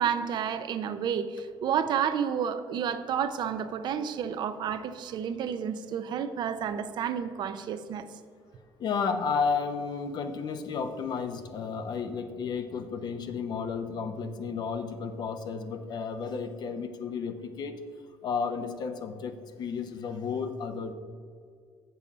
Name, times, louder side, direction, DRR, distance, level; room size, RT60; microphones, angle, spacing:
voice 1, 0.0-8.1, right 8 dB, 55° right, 10 dB, 0.6 m, -30 dB
voice 2, 8.8-17.8 18.2-20.9, left 5 dB, 55° left, 8 dB, 0.8 m, -32 dB
7.2 x 7.0 x 5.4 m, 2.1 s
cardioid pair, 120°, 9 cm